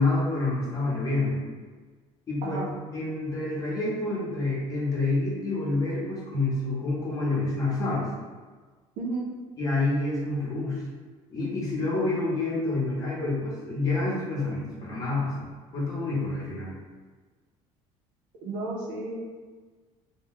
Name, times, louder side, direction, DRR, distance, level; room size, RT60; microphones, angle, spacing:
voice 1, 0.0-1.4 2.3-2.6 2.9-8.1 9.6-10.8 11.3-15.5 15.7-16.7, left 2 dB, 30° left, -6 dB, 0.8 m, -28 dB
voice 2, 9.0-9.3 18.4-19.2, right 3 dB, 90° right, -1 dB, 0.6 m, -32 dB
2.2 x 2.2 x 3.5 m, 1.4 s
cardioid pair, 160°, 12 cm